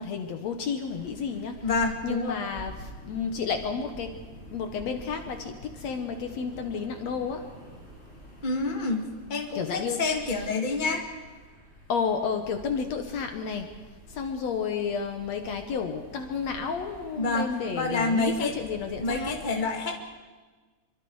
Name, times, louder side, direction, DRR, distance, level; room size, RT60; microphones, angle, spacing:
voice 1, 0.0-1.7 2.0-4.1 4.5-7.5 9.5-10.0 10.4-10.5 11.9-13.7 14.1-19.4, left 6 dB, 65° left, 6 dB, 2.3 m, -31 dB
sound 1, 0.8-19.5, equal, 20° right, 6.6 m, -48 dB
voice 2, 1.6-2.4 8.4-11.0 17.2-17.5 17.8-18.5 19.0-20.0, left 3 dB, 15° left, 2 dB, 2.0 m, -28 dB
26.5 x 24.0 x 4.8 m, 1.3 s
omnidirectional pair, 3.5 m